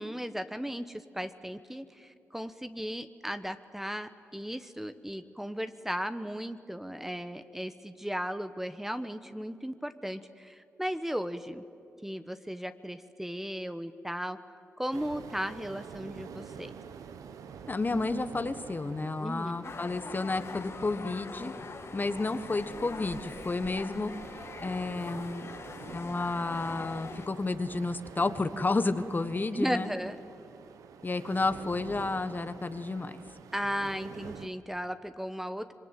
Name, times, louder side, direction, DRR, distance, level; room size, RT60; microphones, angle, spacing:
voice 1, 0.0-11.6 12.0-14.4 14.8-16.7 19.2-19.7 29.5-30.2 33.5-35.7, equal, 5° right, 10 dB, 1.2 m, -36 dB
sound 1, 14.9-34.5, right 7 dB, 90° right, 1.1 m, -47 dB
voice 2, 17.7-21.5 21.9-24.1 24.6-25.5 25.9-29.9 31.0-33.1, left 3 dB, 35° left, 11 dB, 1.4 m, -31 dB
sound 2, 19.6-27.3, left 4 dB, 50° left, 1.7 m, -43 dB
26.0 x 22.5 x 9.1 m, 2.8 s
cardioid pair, 55°, 6 cm